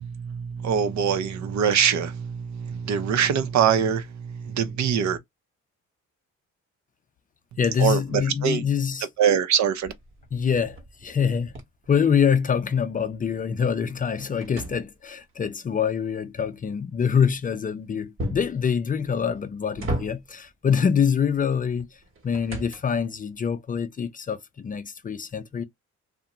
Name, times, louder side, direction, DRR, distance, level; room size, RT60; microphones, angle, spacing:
voice 1, 0.0-5.2 7.8-8.6 9.2-9.9, right 8 dB, 65° right, 0.6 m, -23 dB
voice 2, 7.6-9.1 10.3-11.5 11.9-25.6, left 7 dB, 30° left, 0.4 m, -25 dB
sound 1, 9.8-12.7 13.1-15.4 18.2-18.6 19.3-20.5 21.8-23.1, equal, 45° right, 1.0 m, -36 dB
2.5 x 2.1 x 2.9 m
cardioid pair, 90°, 30 cm